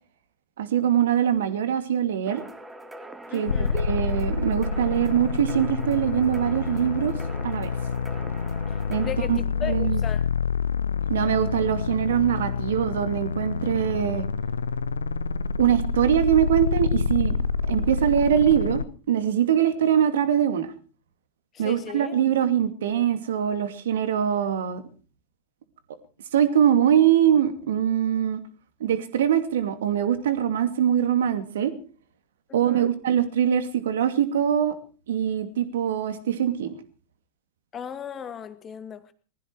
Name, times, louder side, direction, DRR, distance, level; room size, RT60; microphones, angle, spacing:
voice 1, 0.6-2.4 3.3-7.1 7.4-7.7 8.9-10.0 11.1-14.3 15.6-17.3 17.7-20.7 21.6-24.8 26.3-28.4 28.8-31.7 32.5-34.7 35.1-36.8, right 9 dB, 65° right, 2.5 m, -23 dB
sound 1, 2.3-9.1, right 1 dB, 10° right, 2.5 m, -42 dB
voice 2, 3.3-3.9 8.7-10.3 21.5-22.1 32.5-32.9 37.7-39.1, left 8 dB, 25° left, 2.2 m, -37 dB
sound 2, 3.5-18.8, left 5 dB, 75° left, 0.8 m, -27 dB
20.5 x 15.0 x 4.8 m
figure-of-eight pair, 90°, 0 cm